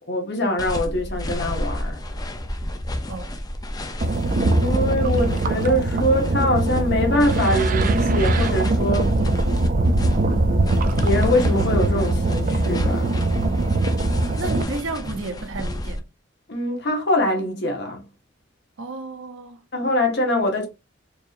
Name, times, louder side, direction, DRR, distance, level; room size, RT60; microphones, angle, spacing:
voice 1, 0.0-2.0 4.5-9.2 10.9-13.2 16.5-18.0 19.7-20.7, left 1 dB, 60° left, 1.3 m, -23 dB
sound 1, 0.6-16.0, left 1 dB, 20° left, 0.5 m, -30 dB
sound 2, 4.0-14.6, right 2 dB, 45° right, 0.4 m, -21 dB
voice 2, 14.3-16.0 18.8-19.6, right 3 dB, 85° right, 0.7 m, -32 dB
4.5 x 2.7 x 2.5 m
head